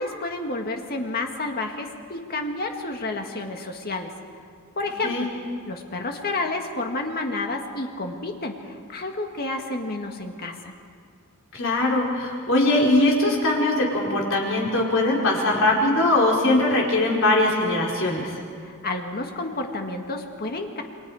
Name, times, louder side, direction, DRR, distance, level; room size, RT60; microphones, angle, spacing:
voice 1, 0.0-4.1 4.8-5.3 5.7-10.7 18.6-20.8, left 2 dB, 45° left, 3 dB, 2.0 m, -30 dB
voice 2, 11.5-18.4, left 2 dB, 65° left, -1 dB, 4.6 m, -21 dB
29.0 x 23.0 x 5.0 m, 2.2 s
head